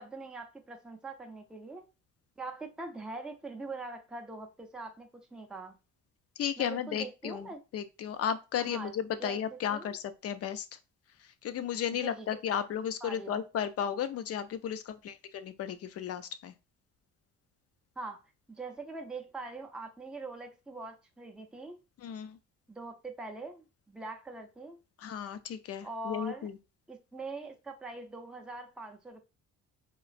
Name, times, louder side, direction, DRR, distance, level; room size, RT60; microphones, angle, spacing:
voice 1, 0.0-1.8 2.4-5.8 6.6-7.6 8.6-9.4 9.7-10.0 12.0-12.3 13.0-13.4 18.0-18.2 18.5-21.8 22.7-24.8 25.8-26.5 26.9-29.2, right 3 dB, 5° right, 0.4 m, -43 dB
voice 2, 6.4-10.7 11.4-16.5 22.0-22.4 25.0-26.6, left 9 dB, 50° left, 0.5 m, -34 dB
3.0 x 2.4 x 2.4 m
cardioid pair, 90°, 30 cm